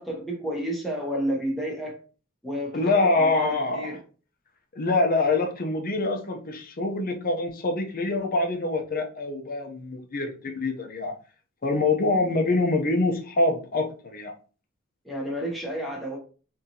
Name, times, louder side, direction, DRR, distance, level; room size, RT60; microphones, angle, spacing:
voice 1, 0.0-2.0 2.4-4.0 15.0-16.2, equal, ahead, -2 dB, 0.8 m, -31 dB
voice 2, 2.7-3.9 4.7-11.2 11.6-14.3, left 2 dB, 45° left, 3 dB, 0.7 m, -25 dB
3.7 x 2.8 x 2.8 m, 0.37 s
head